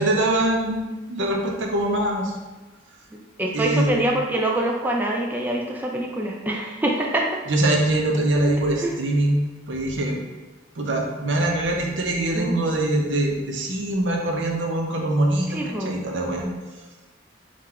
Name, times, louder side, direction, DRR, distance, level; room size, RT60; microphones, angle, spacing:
voice 1, 0.0-2.3 3.5-4.2 7.5-9.4 9.7-10.2 10.8-16.5, right 1 dB, 75° right, 1 dB, 0.7 m, -23 dB
voice 2, 3.4-7.4 8.8-8.9 12.3-12.6 15.5-15.9, right 1 dB, 10° right, -1 dB, 0.3 m, -25 dB
3.8 x 2.4 x 4.2 m, 1.2 s
head